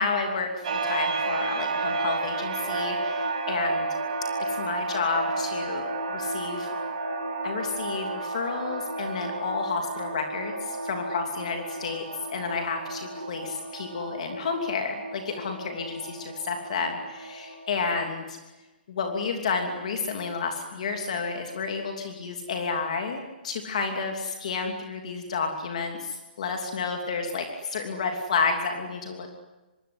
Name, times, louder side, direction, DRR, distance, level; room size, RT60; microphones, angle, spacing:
voice 1, 0.0-3.9 4.6-5.9 6.1-6.7 7.4-12.0 12.3-18.4 18.9-29.3, left 4 dB, 40° left, 4 dB, 2.9 m, -31 dB
sound 1, 0.6-17.9, right 3 dB, 45° right, 5.9 m, -32 dB
25.0 x 23.0 x 9.7 m, 1.1 s
hypercardioid pair, 180°, 5 cm